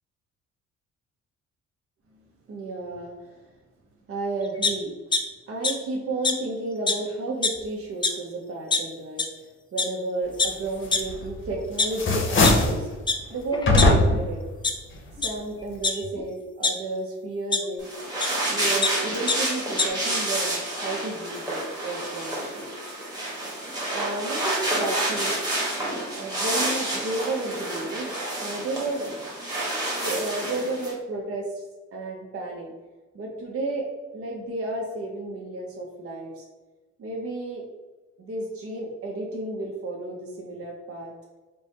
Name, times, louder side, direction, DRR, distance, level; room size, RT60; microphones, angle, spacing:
voice 1, 2.5-3.4 4.1-4.9 5.5-9.2 9.7-12.9 13.3-14.4 15.2-17.9 18.5-22.7 23.9-25.5 26.1-29.0 30.0-31.6 31.9-32.7 33.1-33.9 34.1-36.4 37.0-37.6 38.2-41.1, right 2 dB, 50° right, -1 dB, 0.8 m, -32 dB
sound 1, 4.6-5.2 5.6-5.7 6.2-6.3 6.9-7.0 7.3-7.6 8.0-8.1 8.7-8.8 9.2-9.3 9.8-9.9 10.4-10.5 10.9-11.0 11.6-12.5 13.1-13.2 13.5-14.2 14.6-14.7 15.2-15.3 15.8-16.7 17.5-17.6 18.2-18.3 18.6-18.9 19.3-19.4 19.6-19.9, left 3 dB, 15° left, 0.4 m, -23 dB
sound 2, 11.1-11.5 11.8-12.8 13.7-14.3, left 2 dB, 40° left, 0.8 m, -19 dB
sound 3, 17.8-30.9, right 1 dB, 15° right, 1.2 m, -29 dB
3.3 x 2.1 x 4.1 m, 1.2 s
cardioid pair, 90°, 30 cm